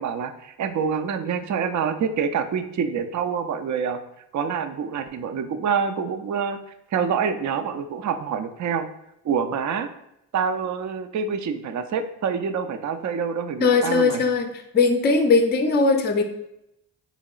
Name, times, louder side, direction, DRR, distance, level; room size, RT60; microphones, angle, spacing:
voice 1, 0.0-4.0 4.3-6.6 6.9-8.9 9.2-9.9 10.3-14.2, right 6 dB, 45° right, 9 dB, 0.4 m, -26 dB
voice 2, 13.6-16.2, left 4 dB, 25° left, 4 dB, 0.5 m, -19 dB
3.5 x 3.0 x 2.3 m, 0.82 s
supercardioid pair, 50°, 43 cm